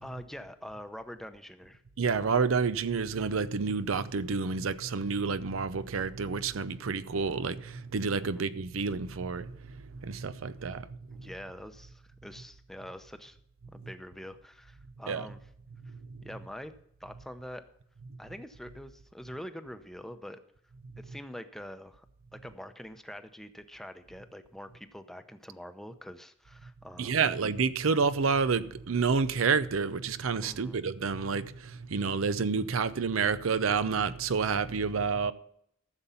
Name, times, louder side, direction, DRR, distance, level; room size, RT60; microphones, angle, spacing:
voice 1, 0.0-1.8 8.2-8.5 11.1-13.4 13.7-15.5 15.8-15.9 16.2-16.7 17.0-17.7 18.2-20.4 21.0-22.1 22.3-27.2 30.4-30.8, equal, ahead, 0.7 m, -45 dB
voice 2, 2.0-9.5 10.0-10.8 15.1-15.3 27.0-31.5 31.9-35.3, right 5 dB, 85° right, 0.6 m, -29 dB
14.0 x 7.1 x 5.6 m
head